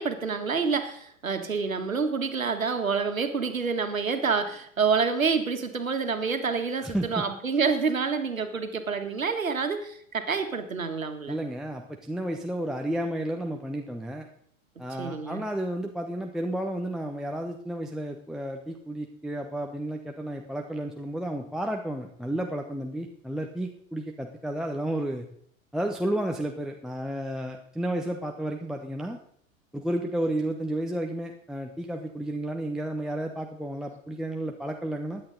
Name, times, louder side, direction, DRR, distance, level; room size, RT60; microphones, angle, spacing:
voice 1, 0.0-11.4 15.0-15.5, right 5 dB, 80° right, 7 dB, 1.9 m, -28 dB
voice 2, 6.8-7.2 11.3-14.3 14.8-25.3 25.7-29.2 29.7-35.2, right 1 dB, ahead, 2 dB, 1.0 m, -32 dB
16.5 x 10.5 x 4.0 m, 0.64 s
figure-of-eight pair, 90°, 40 cm